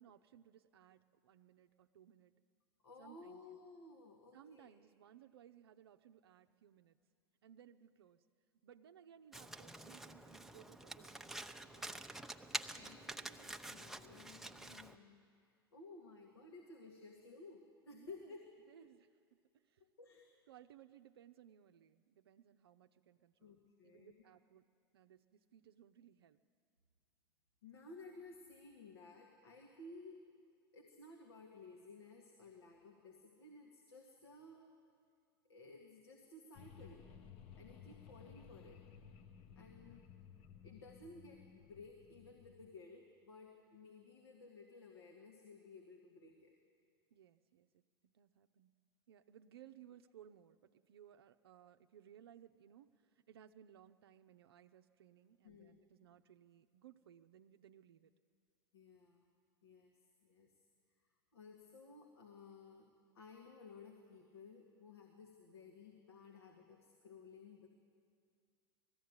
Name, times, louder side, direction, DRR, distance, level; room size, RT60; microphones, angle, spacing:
voice 1, 0.0-2.3 3.0-3.6 4.3-7.0 7.4-8.2 8.6-12.1 12.7-13.7 17.9-18.3 18.7-19.4 19.6-19.8 20.5-23.6 23.8-24.7 24.9-26.4 47.1-48.8 49.1-58.1, right 10 dB, 75° right, 6 dB, 0.6 m, -62 dB
voice 2, 2.8-4.7 12.7-18.4 18.7-18.8 20.0-20.3 23.4-24.2 27.6-30.2 30.7-34.6 35.5-37.1 37.6-38.9 39.6-40.0 40.6-46.6 55.4-55.9 58.7-59.2 59.6-59.9 60.2-60.5 61.3-62.9 63.1-67.7, left 3 dB, 80° left, 0 dB, 2.1 m, -56 dB
Domestic sounds home sounds, 9.3-14.9, right 2 dB, 5° right, 0.8 m, -47 dB
sound 1, 36.6-42.8, left 7 dB, 45° left, 1.2 m, -58 dB
19.0 x 14.5 x 9.6 m, 2.2 s
hypercardioid pair, 90°, 13 cm